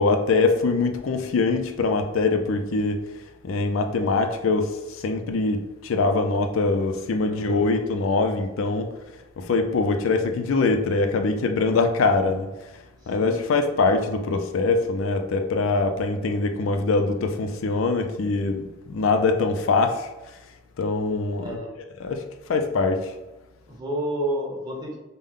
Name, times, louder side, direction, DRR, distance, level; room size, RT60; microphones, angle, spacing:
voice 1, 0.0-3.0 3.4-8.9 9.4-12.5 13.1-20.1 20.8-21.5 22.0-22.2 22.5-23.1, left 3 dB, 75° left, 0.4 m, -23 dB
voice 2, 7.3-7.6 13.0-13.4 21.4-21.7 23.7-25.0, right 1 dB, 20° right, 0.9 m, -30 dB
5.3 x 2.1 x 3.6 m
head